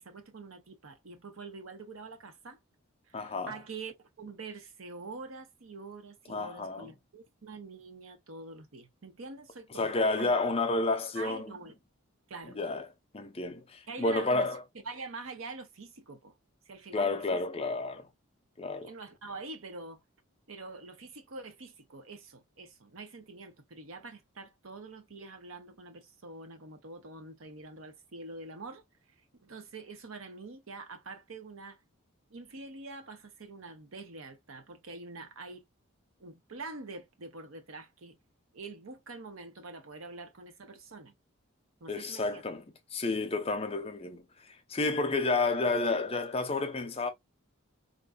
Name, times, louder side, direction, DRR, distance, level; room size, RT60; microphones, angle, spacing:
voice 1, 0.0-2.6 3.1-10.3 11.1-11.7 12.3-12.6 13.9-14.5 14.8-16.3 16.7-17.4 18.8-20.0 20.5-31.8 32.3-35.6 36.2-38.2 38.5-41.1 41.8-42.4, right 3 dB, 80° right, 0.8 m, -45 dB
voice 2, 3.1-3.5 6.3-6.9 9.8-11.6 12.4-12.8 13.1-14.6 16.9-18.1 18.6-18.9 41.9-42.6 42.9-44.2 44.7-47.1, left 3 dB, 30° left, 0.6 m, -30 dB
3.6 x 2.6 x 2.2 m
head